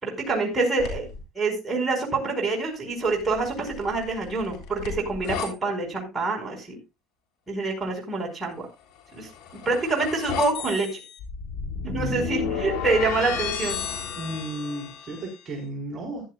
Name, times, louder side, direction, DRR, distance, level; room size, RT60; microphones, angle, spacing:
voice 1, 0.0-1.1 1.4-6.8 7.5-8.6 9.1-9.3 9.7-11.0 11.8-13.8, right 3 dB, 15° right, -1 dB, 5.2 m, -26 dB
sound 1, 0.8-1.2 3.1-5.5 9.0-15.4, left 6 dB, 75° left, 3.4 m, -33 dB
voice 2, 14.2-16.2, right 1 dB, 30° right, 0 dB, 4.4 m, -34 dB
15.0 x 11.0 x 2.4 m, 0.26 s
cardioid pair, 115°, 0 cm